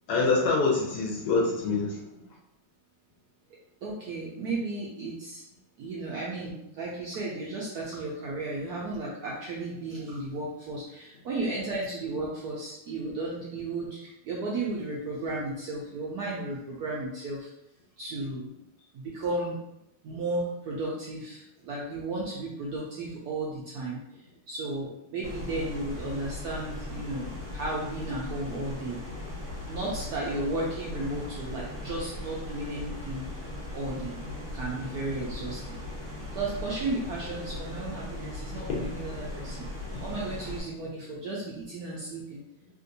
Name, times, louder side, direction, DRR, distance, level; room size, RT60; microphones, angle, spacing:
voice 1, 0.1-2.0 38.7-38.8 39.9-40.0, left 3 dB, 70° left, -2 dB, 0.9 m, -25 dB
voice 2, 3.8-5.4 5.8-17.5 18.0-18.5 18.9-19.6 20.0-24.0 24.5-29.0 29.7-33.3 33.7-34.2 34.5-35.7 36.3-39.7 40.0-42.4, right 2 dB, 85° right, -5 dB, 0.8 m, -34 dB
sound 1, 25.2-40.6, left 1 dB, 20° right, 0.8 m, -38 dB
3.5 x 2.6 x 2.6 m, 0.84 s
omnidirectional pair, 2.3 m